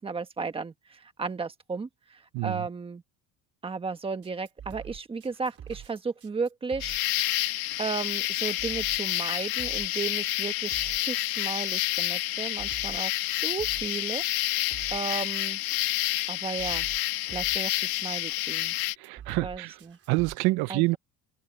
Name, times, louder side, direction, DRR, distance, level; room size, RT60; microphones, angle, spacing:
voice 1, 0.0-3.0 3.6-6.9 7.8-13.1 13.4-14.2 14.9-15.6 16.3-16.9 17.2-18.8 19.4-20.0 20.7-21.0, right 4 dB, 15° right, 1.3 m, -34 dB
voice 2, 2.3-2.7 19.0-19.8 20.1-21.0, right 22 dB, 70° right, 0.7 m, -27 dB
sound 1, 4.2-20.3, right 9 dB, 35° right, 3.8 m, -46 dB
sound 2, 6.8-18.9, left 17 dB, 65° left, 1.3 m, -29 dB
cardioid pair, 170°, 39 cm